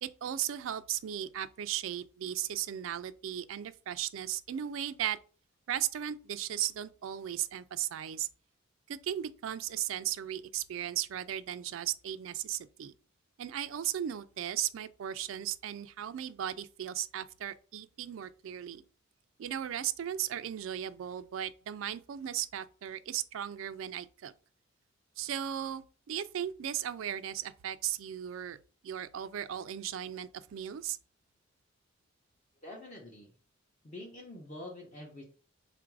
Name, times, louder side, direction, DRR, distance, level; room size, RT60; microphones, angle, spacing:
voice 1, 0.0-5.2 5.7-8.3 8.9-12.9 13.4-18.8 19.4-24.3 25.2-28.6 28.8-31.0, right 11 dB, 85° right, 0.3 m, -36 dB
voice 2, 32.6-33.3 33.8-35.2, left 1 dB, 35° left, 0.7 m, -46 dB
3.8 x 2.5 x 4.6 m
head